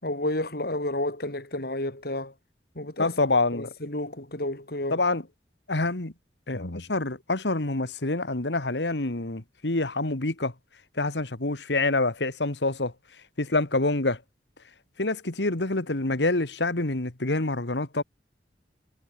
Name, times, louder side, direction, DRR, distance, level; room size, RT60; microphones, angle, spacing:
voice 1, 0.0-2.3 2.7-3.2 3.5-5.0, left 1 dB, 60° left, 6.6 m, -31 dB
voice 2, 3.0-3.7 4.9-5.2 5.7-6.1 6.5-10.5 11.0-12.9 13.4-14.2 15.0-18.0, left 2 dB, 80° left, 2.0 m, -26 dB
head